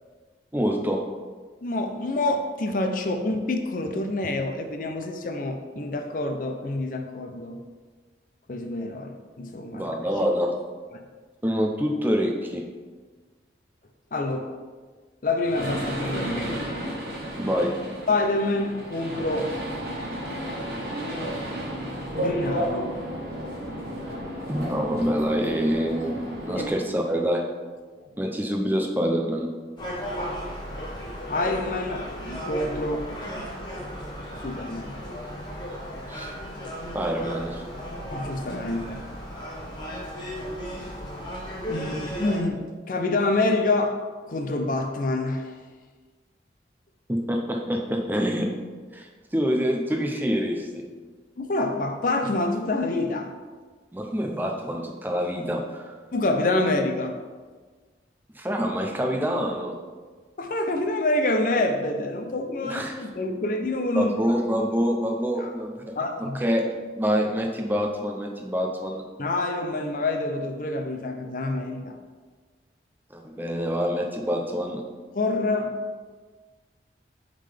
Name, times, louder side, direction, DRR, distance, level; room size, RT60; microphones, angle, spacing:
voice 1, 0.5-1.0 9.7-10.5 11.4-12.6 17.4-17.8 24.5-27.4 28.2-29.5 36.1-36.3 36.9-37.6 47.1-48.5 48.9-50.9 53.9-55.9 58.4-59.8 62.6-63.0 64.0-66.0 66.3-66.7 67.0-69.0 73.1-74.8, equal, 10° right, 2 dB, 0.5 m, -26 dB
voice 2, 1.6-7.6 8.5-9.9 14.1-14.5 15.2-16.7 18.1-19.5 22.1-23.0 26.6-26.7 31.3-32.1 32.4-33.2 34.4-35.0 38.1-39.0 41.7-44.0 44.3-45.5 51.4-53.3 56.1-57.1 60.4-64.1 65.4-65.5 66.0-66.4 69.2-72.0 75.1-75.8, left 2 dB, 50° left, 5 dB, 0.5 m, -27 dB
sound 1, 15.4-26.7, equal, 55° right, 1.6 m, -32 dB
Gull seagull, 29.8-42.4, equal, 25° left, 1.1 m, -35 dB
8.7 x 3.8 x 3.4 m, 1.4 s
head